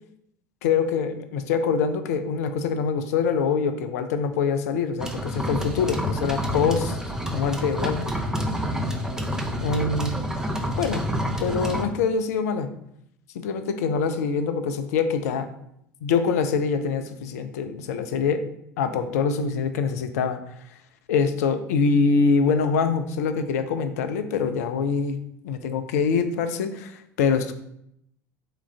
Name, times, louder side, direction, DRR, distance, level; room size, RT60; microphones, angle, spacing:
voice 1, 0.6-7.0 7.3-8.1 9.6-10.2 10.8-11.1 11.4-12.7 13.3-15.5 16.0-18.4 18.8-20.4 21.1-25.2 25.4-27.5, left 5 dB, 65° left, 9 dB, 0.4 m, -24 dB
sound 1, 5.0-11.8, equal, 5° right, 0.5 m, -28 dB
3.8 x 2.4 x 3.3 m, 0.75 s
figure-of-eight pair, 70°, 9 cm